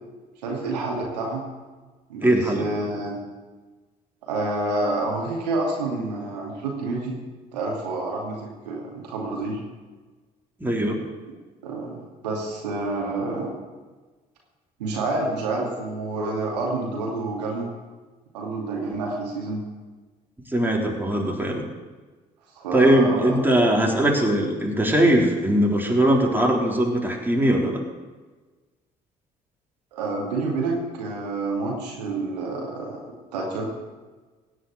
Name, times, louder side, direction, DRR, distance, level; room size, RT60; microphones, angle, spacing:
voice 1, 0.4-1.5 2.1-3.2 4.2-7.2 7.5-9.6 11.6-13.5 14.8-17.7 18.3-19.6 22.6-23.4 29.9-33.0 33.3-33.7, right 2 dB, 85° right, -1 dB, 2.5 m, -28 dB
voice 2, 2.2-2.7 10.6-11.0 20.5-21.6 22.7-27.8, right 1 dB, 10° right, 0 dB, 3.9 m, -20 dB
17.0 x 6.4 x 9.4 m, 1.3 s
hypercardioid pair, 45°, 21 cm